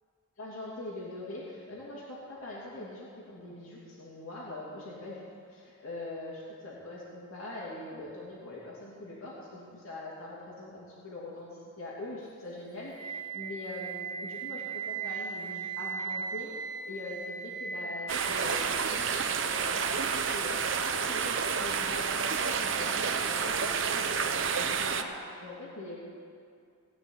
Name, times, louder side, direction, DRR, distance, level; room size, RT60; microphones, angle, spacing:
voice 1, 0.4-5.2 5.5-11.5 11.8-26.0, left 2 dB, 70° left, -6 dB, 2.9 m, -42 dB
Wind instrument woodwind instrument, 12.9-18.9, right 5 dB, 40° right, 1.3 m, -38 dB
sound 1, 18.1-25.0, right 6 dB, 60° right, 0.7 m, -30 dB
16.5 x 6.1 x 9.7 m, 2.3 s
head